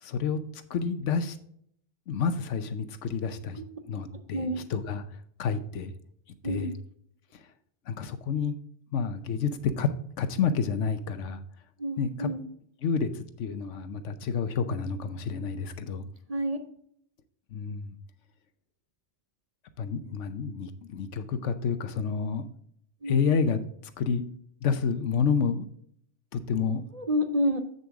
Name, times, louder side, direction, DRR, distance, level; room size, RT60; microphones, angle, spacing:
voice 1, 0.0-1.4 2.1-3.6 3.9-5.0 5.4-5.9 6.4-6.7 7.9-8.5 8.9-9.5 9.8-9.9 10.2-11.4 12.0-12.3 12.8-16.1 17.5-17.9 19.8-22.4 23.1-23.6 24.0-24.3 24.6-25.7 26.3-26.8, left 6 dB, 90° left, 11 dB, 1.1 m, -29 dB
voice 2, 4.1-4.6 6.4-6.7 11.8-12.4 16.3-16.6 23.0-23.2 26.9-27.6, equal, 40° right, 7 dB, 0.7 m, -29 dB
7.8 x 6.8 x 3.6 m, 0.67 s
omnidirectional pair, 1.2 m